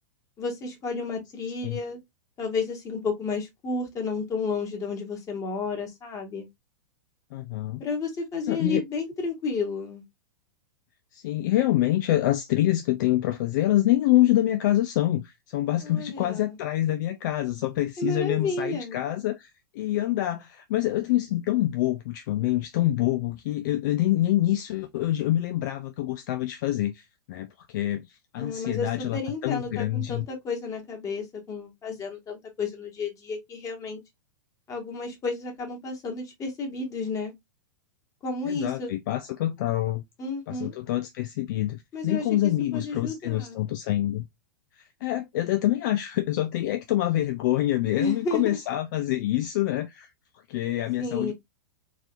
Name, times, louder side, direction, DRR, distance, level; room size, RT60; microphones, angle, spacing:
voice 1, 0.4-2.0 2.4-6.5 7.8-10.0 15.8-16.6 18.0-19.0 28.4-34.0 34.7-37.3 38.2-38.9 40.2-40.8 41.9-42.2 42.7-43.6 48.0-48.6 51.0-51.3, left 4 dB, 30° left, 1.7 m, -31 dB
voice 2, 7.3-7.8 8.5-8.8 11.1-30.3 38.5-40.0 40.5-44.3 44.8-50.1 50.5-51.3, left 14 dB, 55° left, 0.5 m, -26 dB
3.9 x 2.9 x 2.5 m
hypercardioid pair, 105°, 12 cm